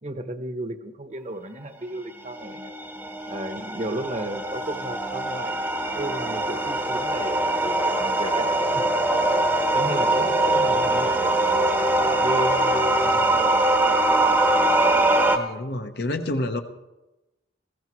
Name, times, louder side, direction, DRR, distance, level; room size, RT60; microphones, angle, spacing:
voice 1, 0.0-2.7 3.3-5.6 5.9-8.5 8.7-8.9 9.7-11.6 12.2-13.7, right 1 dB, 40° right, 8 dB, 0.9 m, -33 dB
sound 1, 2.2-15.4, right 2 dB, 10° right, 0.9 m, -22 dB
voice 2, 13.0-13.4 15.3-16.6, left 1 dB, 55° left, 6 dB, 0.9 m, -29 dB
20.5 x 14.5 x 3.1 m, 1.0 s
head